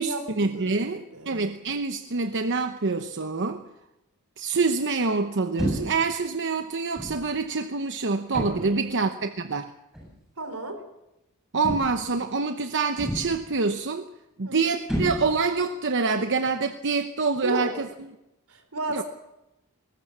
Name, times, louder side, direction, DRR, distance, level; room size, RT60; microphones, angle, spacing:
voice 1, 0.0-3.6 4.4-9.7 11.5-14.0 14.4-17.9 18.9-19.0, right 4 dB, 55° right, 7 dB, 1.0 m, -26 dB
voice 2, 0.5-1.4 8.6-9.0 10.4-10.8 14.4-14.7 17.4-17.7 18.5-19.0, right 2 dB, 80° right, 7 dB, 4.0 m, -33 dB
sound 1, 5.6-6.1 7.0-7.3 8.3-8.8 9.9-10.2 11.6-12.1 13.0-13.5 14.9-15.6, equal, ahead, 7.5 m, -30 dB
21.0 x 19.0 x 7.3 m, 0.91 s
head